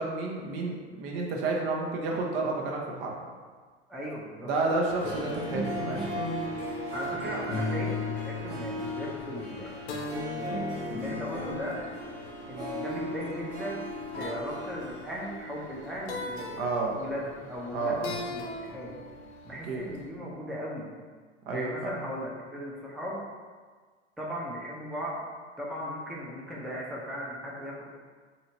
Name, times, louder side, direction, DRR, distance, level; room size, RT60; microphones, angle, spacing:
voice 1, 0.0-3.2 4.4-6.1 16.6-17.0 17.7-18.2 19.7-19.8 21.5-21.9, right 3 dB, 55° right, -1 dB, 0.8 m, -30 dB
voice 2, 3.9-4.5 6.9-9.7 10.3-11.8 12.5-13.8 14.1-16.7 17.0-19.0 19.4-20.9 21.5-23.2 24.2-25.2 25.6-27.8, equal, ahead, -5 dB, 0.5 m, -37 dB
Harp, 4.8-15.9 16.1-16.2, equal, 85° right, 0.9 m, -37 dB
sound 1, 4.9-20.0, left 3 dB, 70° left, 0.7 m, -39 dB
2.8 x 2.8 x 4.3 m, 1.5 s
hypercardioid pair, 90°, 35 cm